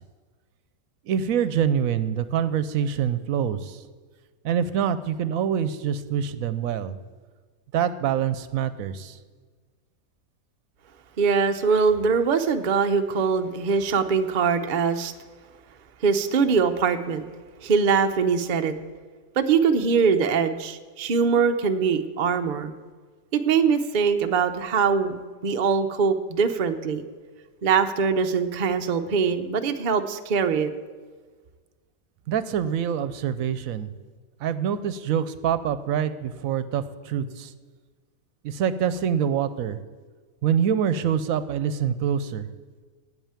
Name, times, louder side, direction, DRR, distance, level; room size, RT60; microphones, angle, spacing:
voice 1, 1.1-3.8 4.4-7.0 7.7-9.2 32.3-33.9 34.4-37.5 38.4-39.8 40.4-42.5, right 8 dB, 75° right, 13 dB, 1.0 m, -25 dB
voice 2, 11.2-15.1 16.0-17.3 17.6-18.7 19.4-22.7 23.3-27.0 27.6-30.7, right 5 dB, 50° right, 6 dB, 0.6 m, -22 dB
9.1 x 8.1 x 8.8 m, 1.5 s
omnidirectional pair, 1.5 m